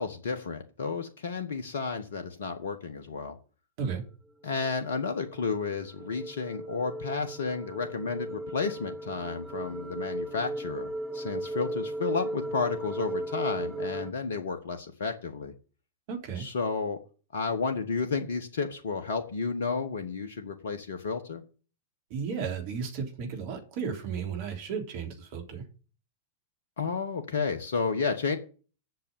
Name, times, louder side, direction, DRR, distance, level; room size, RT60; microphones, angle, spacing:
voice 1, 0.0-3.4 4.4-15.5 16.3-17.0 17.3-21.4 26.8-28.4, left 5 dB, 65° left, 7 dB, 1.3 m, -32 dB
sound 1, 4.6-14.1, right 1 dB, 5° right, 0.7 m, -36 dB
voice 2, 16.1-16.4 22.1-25.6, right 6 dB, 50° right, 2 dB, 3.7 m, -34 dB
8.3 x 6.8 x 8.6 m, 0.38 s
figure-of-eight pair, 95°, 0 cm